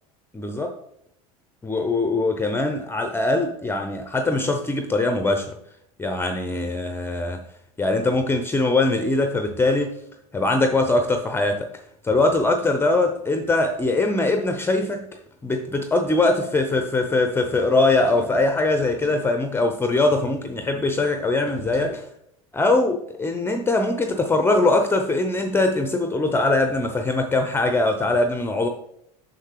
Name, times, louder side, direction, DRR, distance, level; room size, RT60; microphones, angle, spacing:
voice 1, 0.3-0.7 1.6-5.6 6.0-7.4 7.8-10.0 10.3-11.7 12.0-15.1 15.4-22.1 22.5-28.7, left 2 dB, 15° left, 5 dB, 0.6 m, -22 dB
sound 1, 17.7-19.3 21.4-22.0, right 1 dB, 75° right, 2.4 m, -42 dB
6.5 x 6.3 x 3.2 m, 0.75 s
hypercardioid pair, 75°, 18 cm